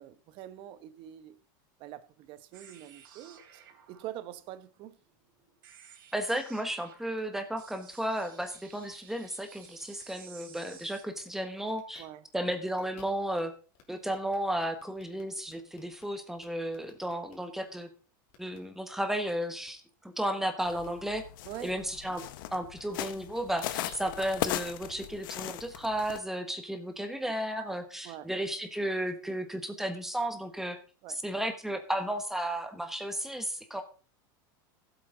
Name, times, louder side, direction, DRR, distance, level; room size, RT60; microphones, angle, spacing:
voice 1, 0.0-1.4 1.8-5.0 12.0-12.3 21.4-21.7 22.1-22.2 28.0-28.3 31.0-31.2, right 12 dB, 50° right, 1.1 m, -45 dB
sound 1, 2.5-11.0, right 8 dB, 80° right, 3.0 m, -55 dB
voice 2, 6.1-12.0 12.3-13.5 13.9-17.9 18.4-21.2 21.6-22.2 22.5-30.8 31.2-33.8, right 1 dB, 5° right, 1.4 m, -33 dB
sound 2, 7.1-7.2 7.5-7.6 7.9-8.1 8.5-9.3 9.6-10.0 10.4-10.7 11.2-11.3 11.6-12.0 12.5-13.4 13.7-13.8 14.1-16.0 16.4-17.4 18.3-18.6 19.1-19.3 19.6-19.7 20.6-20.9 21.1-21.2 22.1-22.3 22.7-22.8 23.3-23.9, left 9 dB, 55° left, 3.2 m, -58 dB
sound 3, 20.6-26.2, left 13 dB, 75° left, 0.9 m, -38 dB
15.0 x 8.2 x 3.9 m
supercardioid pair, 135°, 11 cm